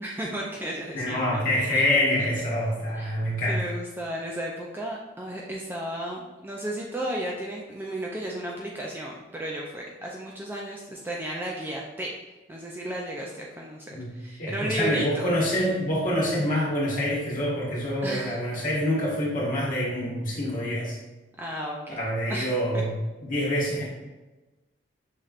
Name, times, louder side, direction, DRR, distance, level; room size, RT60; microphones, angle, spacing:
voice 1, 0.0-1.8 2.2-2.3 2.9-3.1 3.5-12.1 12.5-15.3 18.0-18.4 21.4-22.0 22.3-22.8, right 1 dB, 10° right, -2 dB, 0.3 m, -34 dB
voice 2, 0.9-3.7 13.9-14.1 14.4-20.9 21.9-22.9 23.2-23.8, equal, 40° left, -6 dB, 1.4 m, -26 dB
5.6 x 3.2 x 2.4 m, 1.1 s
head